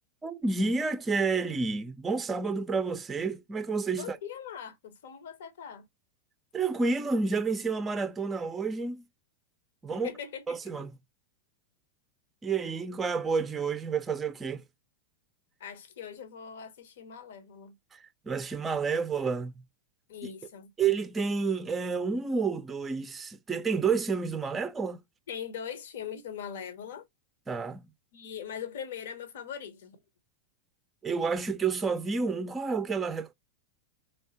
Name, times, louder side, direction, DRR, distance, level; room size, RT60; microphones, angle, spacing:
voice 1, 0.2-4.2 6.5-9.0 9.8-10.1 10.5-10.9 12.4-14.6 17.9-19.6 20.8-25.0 27.5-27.8 31.0-33.3, right 4 dB, 15° right, 0.5 m, -30 dB
voice 2, 4.0-5.9 9.9-10.7 15.6-17.8 20.1-20.7 25.3-27.1 28.1-30.0, left 8 dB, 60° left, 0.9 m, -41 dB
3.4 x 3.3 x 4.1 m
figure-of-eight pair, 90°, 0 cm